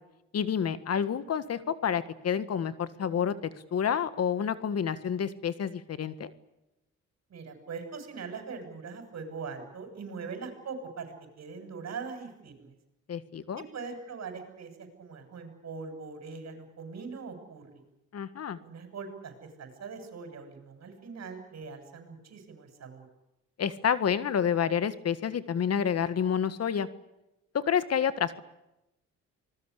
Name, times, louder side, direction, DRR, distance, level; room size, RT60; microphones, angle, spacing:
voice 1, 0.3-3.3 3.7-6.3 13.1-13.6 18.1-18.6 23.6-26.9 27.5-28.4, left 8 dB, 55° left, 13 dB, 1.7 m, -29 dB
voice 2, 7.3-12.8 13.7-17.8 18.6-23.1, right 5 dB, 60° right, 6 dB, 7.8 m, -42 dB
26.0 x 20.5 x 8.4 m, 0.91 s
cardioid pair, 90°, 30 cm